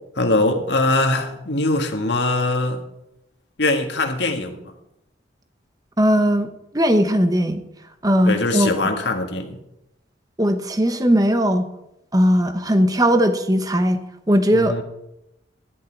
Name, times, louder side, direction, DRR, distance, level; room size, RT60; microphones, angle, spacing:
voice 1, 0.2-2.9 3.6-4.7 8.2-9.6 14.5-14.8, left 2 dB, 65° left, 1.8 m, -22 dB
voice 2, 6.0-6.5 6.7-7.6 8.0-8.7 10.4-11.7 12.1-14.8, equal, 20° right, 0.9 m, -18 dB
13.5 x 11.0 x 4.6 m
head